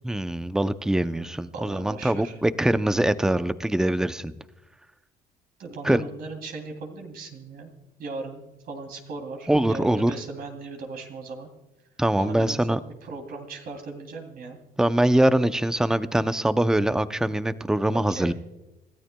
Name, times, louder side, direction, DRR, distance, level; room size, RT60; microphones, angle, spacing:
voice 1, 0.0-4.3 5.8-6.0 9.5-10.1 12.0-12.8 14.8-18.3, right 1 dB, 5° right, 12 dB, 0.5 m, -23 dB
voice 2, 1.5-2.4 5.6-7.7 8.0-11.5 12.2-12.7 13.0-14.6 17.9-18.3, right 3 dB, 65° right, 3 dB, 2.9 m, -38 dB
27.0 x 13.0 x 2.2 m, 0.98 s
cardioid pair, 110°, 17 cm